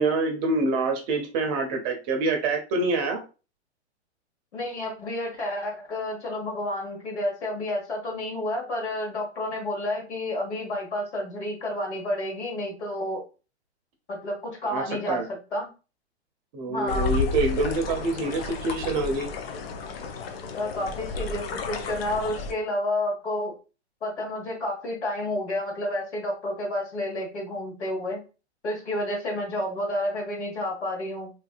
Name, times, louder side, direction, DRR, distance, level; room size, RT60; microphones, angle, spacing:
voice 1, 0.0-3.2 14.7-15.3 16.5-19.3, right 3 dB, 35° right, 4 dB, 0.7 m, -26 dB
voice 2, 4.5-13.2 14.1-15.7 16.7-17.1 18.1-18.2 20.5-23.5 24.0-28.2 28.6-31.3, left 1 dB, 75° left, -1 dB, 1.7 m, -30 dB
sound 1, 16.9-22.5, left 4 dB, 60° left, 0.6 m, -32 dB
3.1 x 2.6 x 2.4 m, 0.33 s
hypercardioid pair, 115°, 34 cm